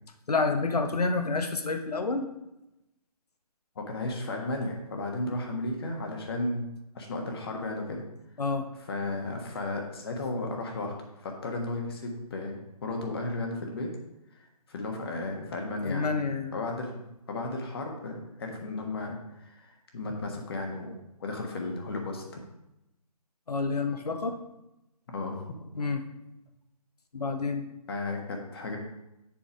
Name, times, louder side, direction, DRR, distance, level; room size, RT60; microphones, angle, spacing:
voice 1, 0.3-2.3 8.4-8.7 15.8-16.6 23.5-24.4 25.7-26.0 27.1-27.6, left 3 dB, 75° left, 6 dB, 1.2 m, -28 dB
voice 2, 3.7-6.7 6.9-8.0 8.9-13.9 14.3-16.1 16.5-20.9 21.2-22.4 25.1-25.4 27.9-28.8, left 2 dB, 40° left, 2 dB, 1.4 m, -34 dB
7.3 x 5.3 x 5.1 m, 0.88 s
figure-of-eight pair, 160°, 20 cm